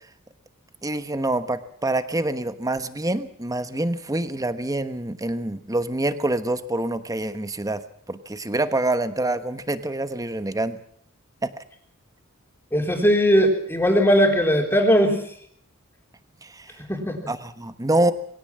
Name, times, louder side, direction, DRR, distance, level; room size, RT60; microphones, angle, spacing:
voice 1, 0.8-7.8 8.1-10.8 11.4-11.5 16.4-16.8 17.3-18.1, right 2 dB, 15° right, 11 dB, 1.1 m, -26 dB
voice 2, 12.7-15.2 16.9-17.2, equal, 10° left, 3 dB, 3.7 m, -19 dB
21.5 x 17.0 x 7.5 m, 0.63 s
head